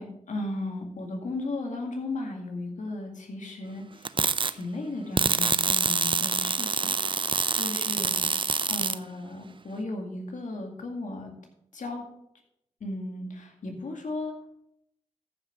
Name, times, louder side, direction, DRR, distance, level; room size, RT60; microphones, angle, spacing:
voice 1, 0.0-4.1 4.5-8.3 8.7-11.3 11.7-12.0 12.8-14.3, left 2 dB, 80° left, 2 dB, 2.1 m, -35 dB
sound 1, 4.0-4.5 5.2-9.0, right 4 dB, 40° right, 0.5 m, -26 dB
13.5 x 5.7 x 4.6 m, 0.76 s
cardioid pair, 40°, 13 cm